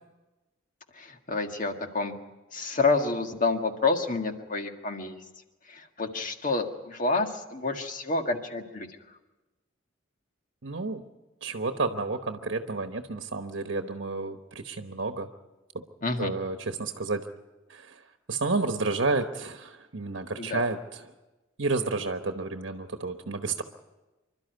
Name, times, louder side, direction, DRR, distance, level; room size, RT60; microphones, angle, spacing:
voice 1, 0.9-2.2 2.5-5.2 5.7-8.9 16.0-16.3 20.4-20.6, left 3 dB, 40° left, 5 dB, 1.8 m, -28 dB
voice 2, 10.6-11.0 11.4-15.3 15.7-15.8 16.2-17.3 17.7-18.0 18.3-21.1 21.6-23.6, right 3 dB, 70° right, 6 dB, 1.1 m, -31 dB
26.5 x 12.5 x 9.4 m, 1.1 s
head